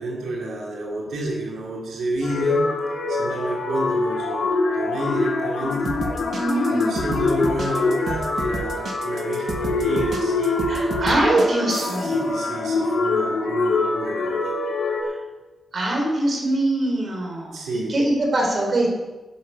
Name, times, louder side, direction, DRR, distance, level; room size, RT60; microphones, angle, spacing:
voice 1, 0.0-2.7 3.1-6.0 6.5-10.6 11.8-14.6 17.5-17.9, right 1 dB, 85° right, -2 dB, 2.8 m, -30 dB
sound 1, 2.2-15.0, left 3 dB, 75° left, 3.0 m, -24 dB
sound 2, 5.7-12.2, right 3 dB, 55° right, 1.4 m, -32 dB
voice 2, 6.3-7.1 10.7-12.2 15.0-15.2 15.7-18.9, right 1 dB, 40° right, 0 dB, 3.8 m, -23 dB
12.0 x 11.5 x 5.6 m, 1.2 s
wide cardioid pair, 145°, 0 cm